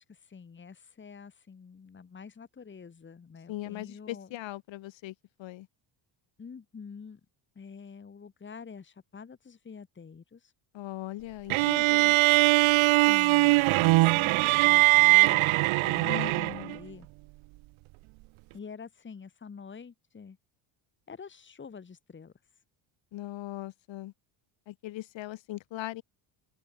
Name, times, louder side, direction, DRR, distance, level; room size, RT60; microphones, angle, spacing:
voice 1, 0.0-4.3 6.4-7.2 7.5-10.5 12.9-17.1 18.5-20.4 21.1-22.3, left 6 dB, 25° left, 3.1 m, -46 dB
voice 2, 3.5-5.7 10.7-12.2 16.0-16.8 23.1-24.1 24.7-26.0, left 15 dB, 65° left, 4.2 m, -39 dB
sound 1, 11.5-16.8, right 21 dB, 75° right, 1.1 m, -21 dB
cardioid pair, 140°, 49 cm